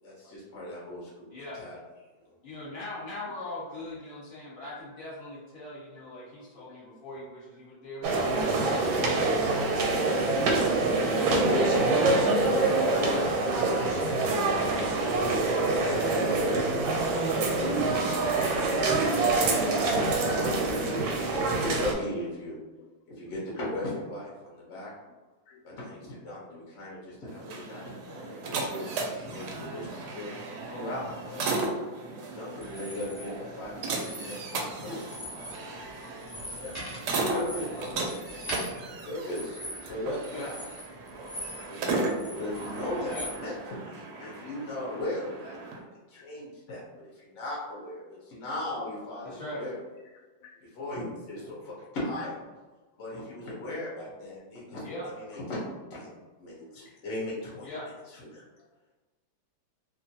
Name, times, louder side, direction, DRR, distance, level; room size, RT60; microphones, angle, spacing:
voice 1, 0.0-1.8 10.8-11.0 11.3-13.8 14.7-14.8 15.1-16.3 16.8-18.2 19.6-19.8 20.3-22.6 23.2-24.9 25.6-30.4 30.7-31.0 31.3-31.5 32.3-35.0 36.5-38.2 38.9-40.6 41.7-46.8 47.1-49.8 50.7-52.3 53.0-57.7 58.1-58.4, left 1 dB, 55° left, -5 dB, 0.9 m, -37 dB
voice 2, 1.3-1.6 2.4-8.6 12.8-13.3 15.6-15.8 17.9-18.3 30.7-31.1 34.8-35.0 37.1-37.5 40.3-40.5 43.1-43.3 49.2-49.7 54.8-55.1 56.8-57.0 57.6-57.9, left 1 dB, 35° left, -7 dB, 1.2 m, -40 dB
voice 3, 6.3-6.6 22.8-22.9 25.5-25.6 26.5-26.6 35.2-36.1 41.5-42.0 44.2-44.3 46.1-46.2 50.4-50.6 52.2-52.3 56.8-56.9, left 6 dB, 80° left, -3 dB, 1.3 m, -55 dB
sound 1, 8.0-21.9, right 3 dB, 90° right, 1.4 m, -25 dB
sound 2, 27.3-45.8, right 3 dB, 75° right, 1.0 m, -36 dB
sound 3, 32.6-33.2 33.9-34.7 35.0-35.6 35.9-41.8 42.1-43.4, equal, 10° left, 0.9 m, -41 dB
2.9 x 2.4 x 2.7 m, 1.2 s
omnidirectional pair, 2.1 m